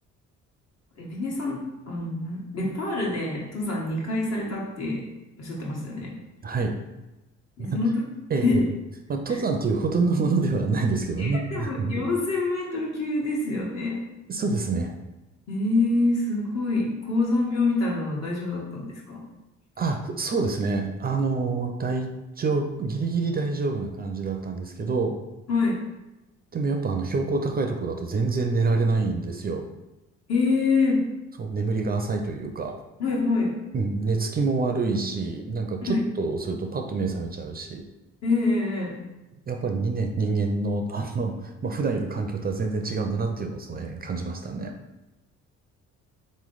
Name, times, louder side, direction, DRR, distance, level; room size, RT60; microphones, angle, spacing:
voice 1, 1.0-5.1 5.4-6.1 7.6-8.1 8.4-8.6 11.2-14.0 15.5-19.2 25.5-25.8 30.3-31.1 33.0-33.6 35.8-36.0 38.2-39.0, left 3 dB, 60° left, -3 dB, 1.3 m, -26 dB
voice 2, 6.4-6.7 7.7-7.8 8.3-8.6 9.1-11.9 14.3-14.9 19.8-22.1 22.4-25.2 26.5-29.6 31.4-32.8 33.7-37.8 39.5-44.8, right 3 dB, 30° right, 4 dB, 0.4 m, -26 dB
3.9 x 3.1 x 3.9 m, 1.0 s
cardioid pair, 90°, 30 cm